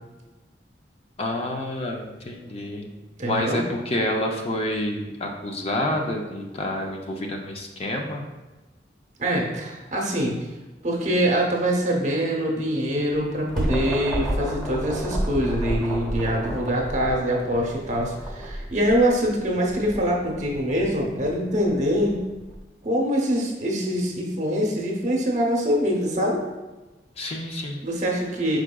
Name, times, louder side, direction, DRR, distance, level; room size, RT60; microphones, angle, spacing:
voice 1, 1.2-2.9 3.2-8.3 27.2-27.8, left 1 dB, 35° left, 2 dB, 0.5 m, -28 dB
voice 2, 3.2-3.6 9.2-10.4 10.8-22.2 22.8-26.4 27.8-28.6, equal, 45° right, 0 dB, 0.9 m, -24 dB
sound 1, 13.1-22.6, right 1 dB, 5° left, 1.0 m, -31 dB
4.9 x 4.7 x 2.2 m, 1.1 s
head